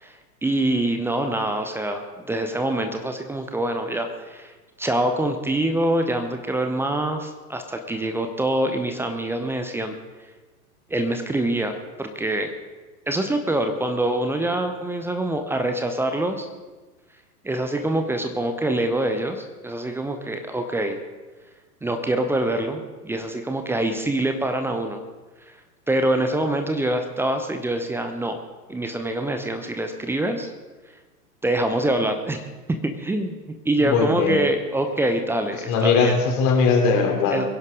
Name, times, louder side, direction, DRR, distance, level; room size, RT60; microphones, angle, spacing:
voice 1, 0.0-4.5 4.8-9.9 10.9-12.5 13.1-16.5 17.4-21.0 21.8-25.0 25.9-28.4 28.7-30.5 31.4-32.4 32.8-33.4 33.6-36.2 37.3-37.4, right 1 dB, 5° right, 6 dB, 0.8 m, -25 dB
voice 2, 33.8-34.4 35.7-37.4, left 5 dB, 35° left, 1 dB, 3.6 m, -20 dB
23.0 x 11.0 x 3.8 m, 1.3 s
figure-of-eight pair, 105°, 48 cm